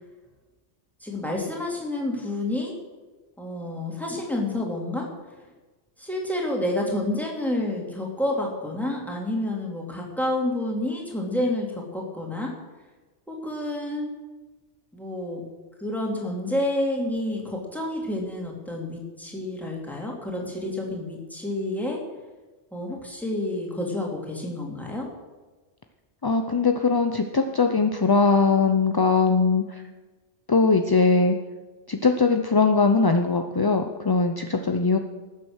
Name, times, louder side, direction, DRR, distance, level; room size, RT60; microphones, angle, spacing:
voice 1, 1.0-2.8 3.4-5.1 6.0-12.5 13.3-14.1 14.9-15.4 15.8-22.0 22.7-25.1, left 1 dB, ahead, -2 dB, 2.8 m, -29 dB
voice 2, 26.2-29.8 30.5-31.4 31.9-35.0, left 4 dB, 30° left, 5 dB, 0.5 m, -21 dB
19.0 x 7.6 x 6.4 m, 1.2 s
omnidirectional pair, 1.2 m